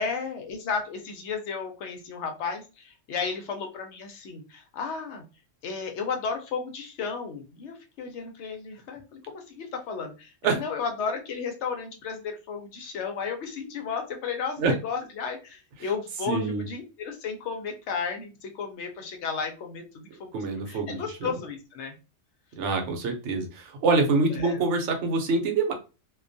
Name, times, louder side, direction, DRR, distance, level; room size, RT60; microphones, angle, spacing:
voice 1, 0.0-5.2 5.6-20.3 20.7-21.9 24.3-24.6, left 5 dB, 70° left, 4 dB, 0.8 m, -33 dB
voice 2, 16.3-16.6 20.3-21.4 22.6-25.7, right 3 dB, 70° right, 4 dB, 0.9 m, -25 dB
2.3 x 2.2 x 2.5 m, 0.31 s
omnidirectional pair, 1.3 m